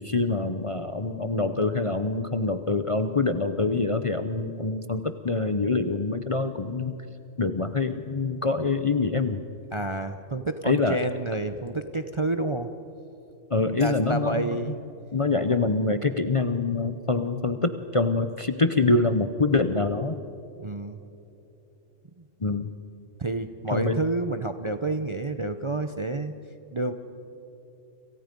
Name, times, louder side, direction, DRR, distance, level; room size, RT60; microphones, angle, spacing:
voice 1, 0.0-7.0 7.4-9.4 10.6-11.0 13.5-14.6 15.1-20.2 22.4-22.7 23.7-24.0, left 3 dB, 30° left, 8 dB, 0.7 m, -25 dB
voice 2, 9.7-12.7 13.8-14.8 20.6-21.0 22.2-22.3 23.2-26.3 26.7-26.9, right 2 dB, 30° right, 8 dB, 0.6 m, -29 dB
29.5 x 27.5 x 5.3 m, 2.9 s
omnidirectional pair, 1.3 m